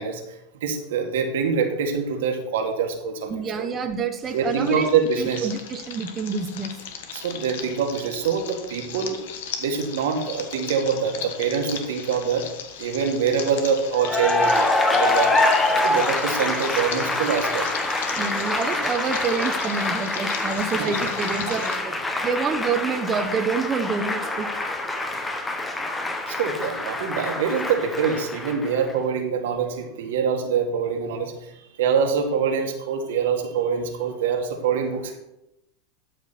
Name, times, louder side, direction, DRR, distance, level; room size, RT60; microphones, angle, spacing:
voice 1, 0.0-3.7 4.3-5.5 7.1-9.2 9.6-12.5 12.8-15.4 15.8-17.7 20.8-21.0 21.5-21.6 22.1-22.3 25.1-25.2 26.3-35.2, right 6 dB, 80° right, 3 dB, 1.8 m, -25 dB
voice 2, 3.3-4.9 5.2-6.7 18.2-21.9 22.2-24.5, right 5 dB, 25° right, 5 dB, 0.9 m, -27 dB
sound 1, 4.2-21.8, left 7 dB, 75° left, 1.4 m, -37 dB
Cheering / Applause, 14.0-28.9, left 2 dB, 10° left, 1.1 m, -25 dB
12.5 x 6.1 x 4.3 m, 0.89 s
supercardioid pair, 130°, 0 cm